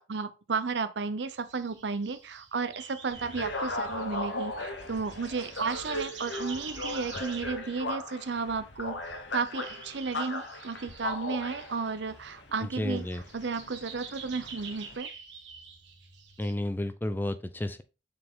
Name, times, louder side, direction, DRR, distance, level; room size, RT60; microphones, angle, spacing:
voice 1, 0.0-9.0 9.3-13.0 13.3-15.1, right 4 dB, 70° right, 0.6 m, -33 dB
sound 1, 1.3-16.5, right 6 dB, 85° right, 1.4 m, -47 dB
sound 2, 3.1-15.0, left 2 dB, 75° left, 1.1 m, -38 dB
voice 2, 12.6-13.2 16.4-17.8, left 1 dB, 10° left, 0.4 m, -32 dB
6.7 x 4.5 x 3.7 m
head